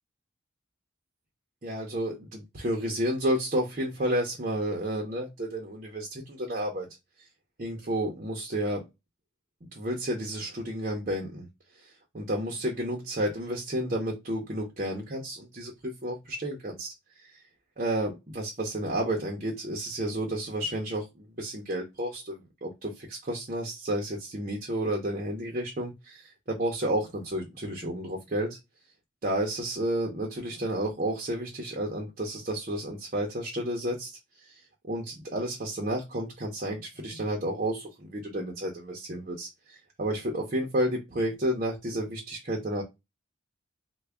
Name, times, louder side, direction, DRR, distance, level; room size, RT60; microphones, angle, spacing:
voice 1, 1.6-6.9 7.6-8.8 9.6-11.5 12.1-16.9 17.2-17.4 17.8-28.6 29.2-34.2 34.9-42.8, right 1 dB, 40° right, -1 dB, 0.7 m, -31 dB
3.3 x 2.2 x 3.5 m, 0.22 s
head